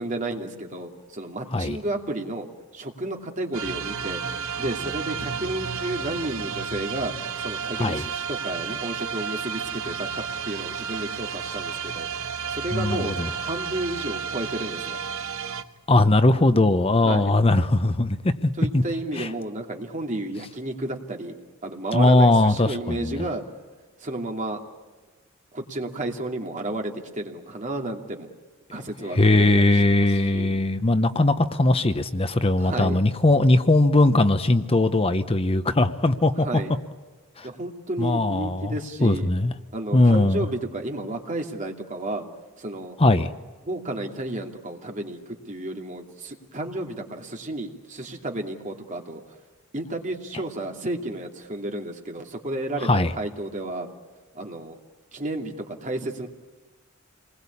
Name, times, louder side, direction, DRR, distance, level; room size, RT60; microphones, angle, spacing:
voice 1, 0.0-2.5 2.7-4.2 4.6-7.1 7.4-12.1 12.5-13.1 13.4-15.0 17.0-17.3 18.6-21.3 21.6-23.4 24.0-24.6 25.5-28.3 28.7-30.5 32.6-33.0 36.4-36.7 37.4-39.3 39.7-42.3 42.6-43.0 43.6-45.2 45.5-49.4 49.7-52.9 53.2-53.9 54.3-54.8 55.1-56.3, right 1 dB, 35° right, 2 dB, 2.7 m, -32 dB
sound 1, 3.5-15.6, right 6 dB, 80° right, 1.6 m, -32 dB
voice 2, 12.7-13.3 15.9-18.8 19.2-19.3 21.9-23.2 29.1-36.5 37.4-37.5 38.0-38.7 39.0-39.5 39.9-40.4 43.0-43.3 52.8-53.1, left 2 dB, 25° left, 10 dB, 0.8 m, -20 dB
27.5 x 20.5 x 8.5 m, 1.3 s
head